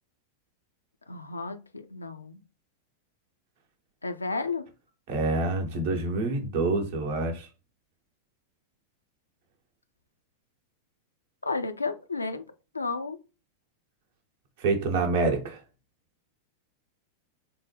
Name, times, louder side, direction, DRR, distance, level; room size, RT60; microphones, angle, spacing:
voice 1, 1.1-2.4 4.0-4.6 11.4-12.4 12.7-13.2, left 3 dB, 80° left, 0.3 m, -32 dB
voice 2, 5.1-7.5 14.6-15.6, right 3 dB, 50° right, 0.8 m, -27 dB
3.5 x 2.1 x 3.2 m
figure-of-eight pair, 90°, 0 cm